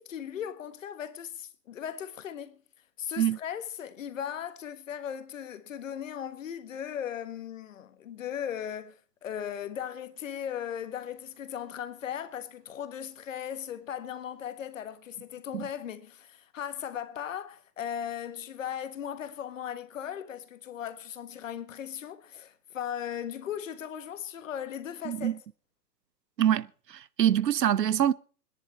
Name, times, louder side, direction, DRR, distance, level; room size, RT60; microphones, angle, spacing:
voice 1, 0.0-2.6 3.0-25.4, left 9 dB, 50° left, 1.5 m, -37 dB
voice 2, 25.1-25.4 26.4-28.1, right 10 dB, 75° right, 0.9 m, -25 dB
21.0 x 10.5 x 4.3 m
hypercardioid pair, 155°, 49 cm